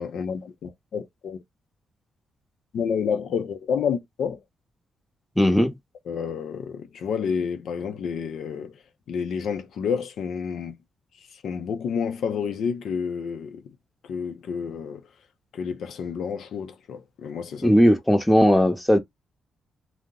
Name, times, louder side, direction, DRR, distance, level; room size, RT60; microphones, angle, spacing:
voice 1, 0.0-1.4 2.7-4.4 6.1-8.8 9.1-10.8 11.3-13.6 14.0-15.0 15.5-17.7, left 6 dB, 75° left, 0.5 m, -29 dB
voice 2, 5.4-5.7 17.6-19.0, equal, 5° left, 0.8 m, -18 dB
2.7 x 2.0 x 3.6 m
supercardioid pair, 60°, 0 cm